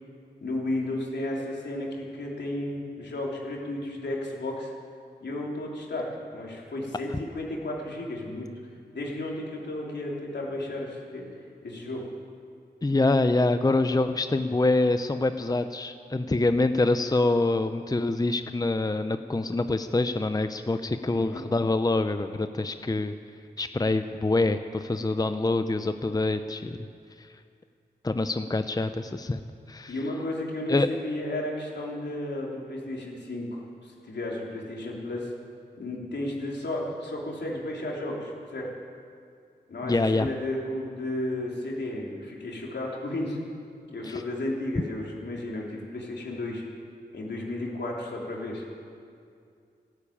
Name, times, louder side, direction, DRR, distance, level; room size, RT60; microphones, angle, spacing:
voice 1, 0.4-4.7 5.2-8.5 8.9-11.2 11.6-12.0 21.3-21.4 29.9-35.3 35.8-38.7 39.7-43.4 43.9-46.6 47.1-48.6, left 1 dB, 80° left, -2 dB, 3.3 m, -33 dB
voice 2, 12.8-23.1 23.6-26.8 28.0-29.4 29.7-29.9 30.7-30.9 39.8-40.3 44.0-44.2, left 2 dB, 20° left, 9 dB, 0.7 m, -25 dB
13.5 x 12.5 x 8.6 m, 2.4 s
cardioid pair, 45°, 18 cm